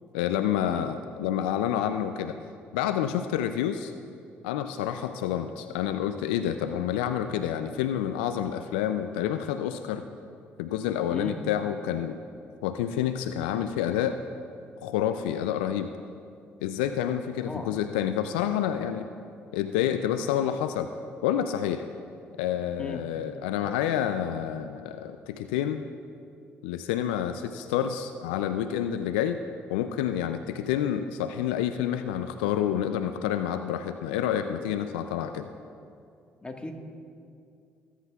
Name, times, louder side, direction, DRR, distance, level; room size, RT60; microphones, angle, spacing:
voice 1, 0.1-2.4 2.7-3.9 4.4-10.0 10.6-12.2 12.6-14.2 14.8-15.9 16.6-19.1 19.5-20.9 21.2-21.8 22.4-25.8 26.6-29.4 29.7-35.5, left 10 dB, 85° left, 9 dB, 0.4 m, -28 dB
voice 2, 0.7-0.9 11.1-11.3 17.4-17.7 22.8-23.0 36.4-36.7, left 2 dB, 20° left, 2 dB, 1.6 m, -36 dB
18.5 x 10.0 x 2.4 m, 2.4 s
hypercardioid pair, 55°, 5 cm